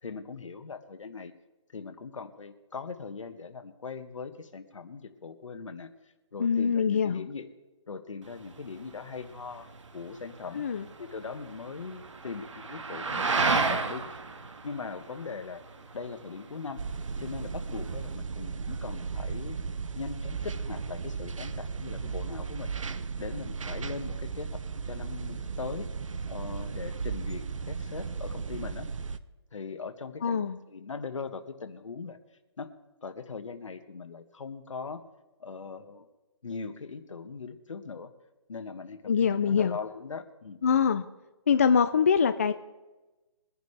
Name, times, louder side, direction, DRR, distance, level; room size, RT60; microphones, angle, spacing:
voice 1, 0.0-1.3 1.7-5.9 6.3-7.5 7.9-9.7 9.9-14.2 14.6-15.6 15.9-16.8 17.2-19.6 19.9-22.7 23.2-24.6 24.8-25.9 26.3-28.9 29.5-30.4 30.7-32.2 32.6-32.7 33.0-35.0 35.4-36.0 36.4-38.1 38.5-40.6, left 5 dB, 75° left, 9 dB, 1.5 m, -40 dB
voice 2, 6.4-7.2 10.5-10.9 30.2-30.6 39.1-39.8 40.6-41.0 41.5-42.5, left 6 dB, 30° left, 10 dB, 0.4 m, -24 dB
sound 1, 8.2-18.2, right 4 dB, 75° right, 1.6 m, -34 dB
sound 2, 16.8-29.2, right 5 dB, 90° right, 0.8 m, -35 dB
23.0 x 10.5 x 3.3 m, 1.1 s
hypercardioid pair, 170°, 16 cm